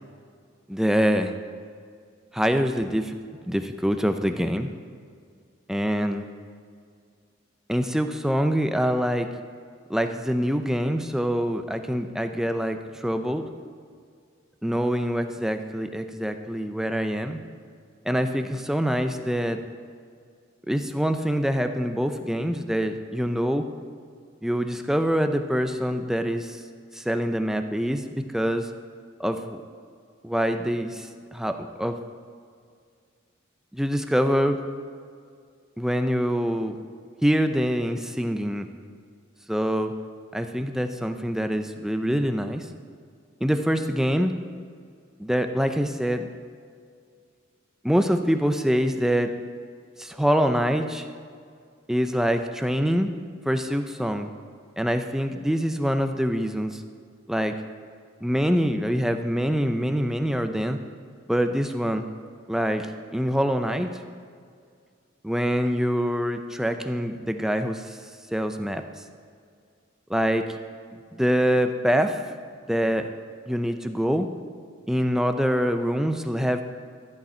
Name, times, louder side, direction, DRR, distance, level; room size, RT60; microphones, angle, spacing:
voice 1, 0.7-1.3 2.3-3.1 3.5-4.7 5.7-6.2 7.7-9.3 9.9-13.5 14.6-17.4 18.1-19.6 20.7-23.7 24.4-26.6 26.9-28.7 29.2-29.6 30.2-32.0 33.7-34.6 35.8-36.7 37.2-38.7 39.5-39.9 40.3-42.7 43.4-44.3 45.2-46.3 47.8-49.3 50.0-51.1 51.9-53.1 53.5-54.3 54.8-56.8 57.3-57.6 58.2-60.8 61.3-62.1 62.5-63.9 65.2-68.0 68.3-68.8 70.1-70.6 71.1-72.2 72.7-73.1 73.5-74.3 74.9-76.6, equal, ahead, 7 dB, 0.5 m, -25 dB
13.0 x 8.4 x 4.3 m, 2.2 s
head